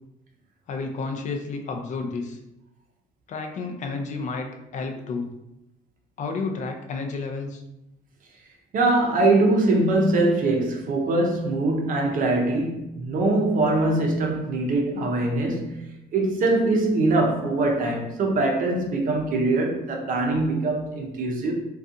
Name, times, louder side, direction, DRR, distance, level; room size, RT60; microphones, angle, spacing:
voice 1, 0.7-2.4 3.3-5.3 6.2-7.6, left 4 dB, 45° left, 3 dB, 0.4 m, -31 dB
voice 2, 8.7-21.5, right 2 dB, 55° right, 1 dB, 0.6 m, -22 dB
2.5 x 2.3 x 2.5 m, 0.89 s
cardioid pair, 110°, 17 cm